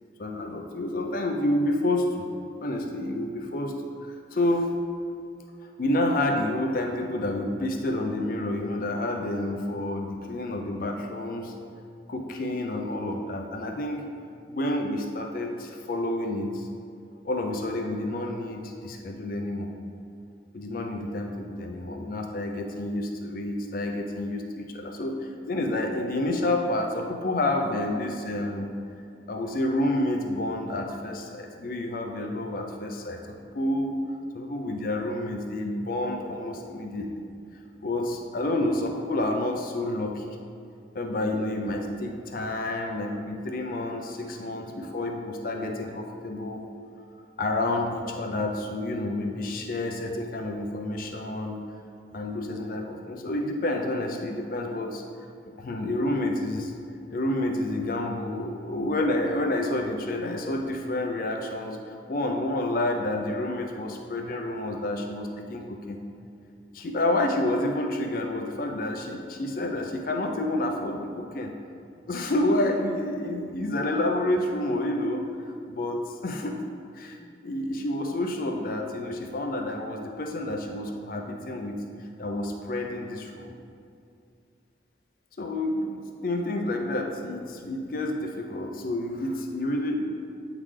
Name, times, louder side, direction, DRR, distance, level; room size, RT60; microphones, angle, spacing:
voice 1, 0.2-2.1 2.6-3.7 4.3-4.7 5.8-11.5 12.1-14.1 14.5-16.7 17.2-19.7 20.5-28.7 29.3-34.0 34.3-37.2 37.8-40.4 40.9-46.6 47.4-51.6 52.1-55.0 55.6-56.7 57.1-66.0 66.7-71.5 72.1-75.3 75.7-76.6 76.9-77.2 77.4-81.8 82.2-83.5 85.4-90.0, left 1 dB, 50° left, 2 dB, 0.4 m, -29 dB
8.4 x 3.7 x 3.2 m, 2.4 s
head